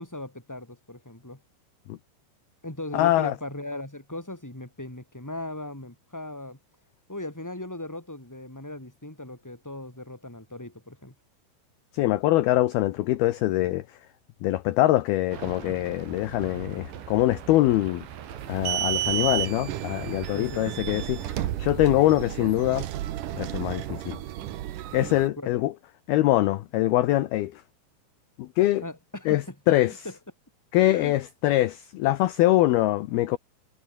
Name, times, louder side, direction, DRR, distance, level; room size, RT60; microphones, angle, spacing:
voice 1, 0.0-1.4 2.6-6.6 7.1-11.1 20.3-20.7 25.4-25.5 28.8-29.5 30.0-30.1 30.8-31.1, left 1 dB, 5° left, 4.8 m, -38 dB
voice 2, 2.9-3.3 11.9-13.9 14.4-18.1 18.5-22.9 23.3-24.2 24.9-25.7 26.1-27.6 28.4-28.8 29.3-30.0 30.7-33.4, left 16 dB, 75° left, 2.4 m, -23 dB
sound 1, 15.3-22.8, right 9 dB, 70° right, 5.0 m, -42 dB
sound 2, 18.4-25.3, right 13 dB, 85° right, 1.8 m, -32 dB
omnidirectional pair, 5.6 m